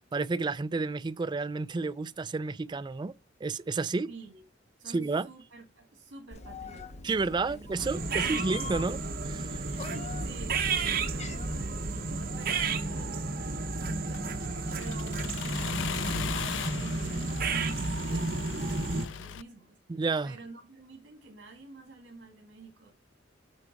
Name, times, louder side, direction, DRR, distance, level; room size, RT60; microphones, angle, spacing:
voice 1, 0.1-3.1 3.4-4.1 4.9-5.3 7.0-9.0 9.3-9.6 19.9-20.4, right 3 dB, 25° right, 0.3 m, -30 dB
voice 2, 4.1-4.4 4.8-7.1 7.5-8.5 8.7-8.9 9.6-14.4 14.8-15.7 16.3-22.9, right 3 dB, 65° right, 2.0 m, -49 dB
Meow, 6.3-12.7, left 3 dB, 35° left, 0.7 m, -43 dB
sound 1, 7.8-19.1, right 3 dB, 50° right, 1.0 m, -32 dB
Accelerating revving vroom, 14.1-19.4, left 9 dB, 75° left, 0.4 m, -39 dB
8.8 x 3.6 x 4.6 m
head